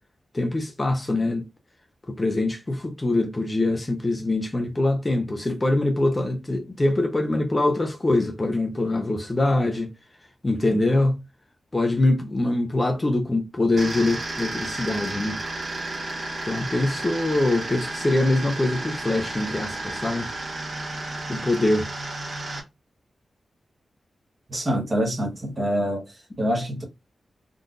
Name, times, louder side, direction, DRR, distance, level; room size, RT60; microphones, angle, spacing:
voice 1, 0.3-1.4 2.1-9.9 10.4-11.2 11.7-15.4 16.4-20.3 21.3-21.9, left 2 dB, 25° left, 0.6 m, -23 dB
sound 1, 13.8-22.6, right 2 dB, 50° right, 1.2 m, -32 dB
voice 2, 24.5-26.8, equal, 30° right, 1.0 m, -26 dB
3.7 x 2.5 x 2.4 m
wide cardioid pair, 115°, 0 cm